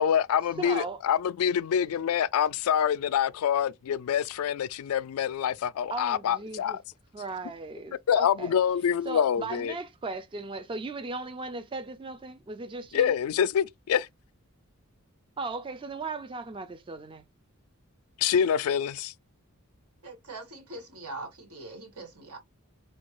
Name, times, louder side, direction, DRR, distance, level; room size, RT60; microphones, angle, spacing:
voice 1, 0.0-6.8 8.1-9.7 12.9-14.1 18.2-19.1, left 8 dB, 70° left, 0.3 m, -26 dB
voice 2, 0.6-1.0 5.9-6.8 7.1-8.5 9.1-13.1 15.4-17.2, right 3 dB, 25° right, 0.3 m, -37 dB
voice 3, 20.0-22.4, right 2 dB, 85° right, 1.8 m, -42 dB
4.3 x 2.3 x 3.0 m
head